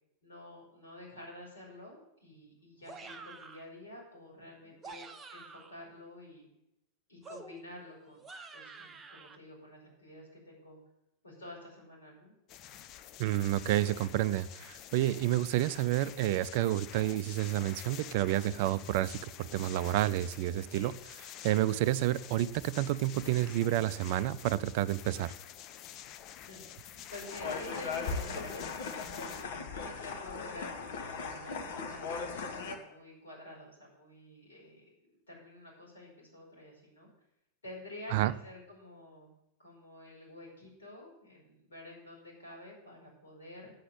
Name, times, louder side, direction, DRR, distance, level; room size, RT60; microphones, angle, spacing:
voice 1, 0.2-6.5 7.1-8.2 8.5-10.8 11.2-12.3 20.7-20.9 26.3-34.8 35.3-37.1 37.6-39.3 39.6-43.7, left 1 dB, 70° left, -2 dB, 5.0 m, -49 dB
sound 1, 2.8-3.7 4.6-5.8 7.2-9.4, right 4 dB, 20° right, 0.9 m, -49 dB
sound 2, 12.5-29.4, left 10 dB, 35° left, 0.6 m, -49 dB
voice 2, 13.2-20.9 21.4-25.3 38.1-38.3, right 14 dB, 50° right, 16 dB, 0.4 m, -30 dB
sound 3, 27.3-32.8, left 4 dB, 55° left, 1.3 m, -38 dB
8.7 x 7.9 x 8.0 m, 0.82 s
figure-of-eight pair, 90°, 0 cm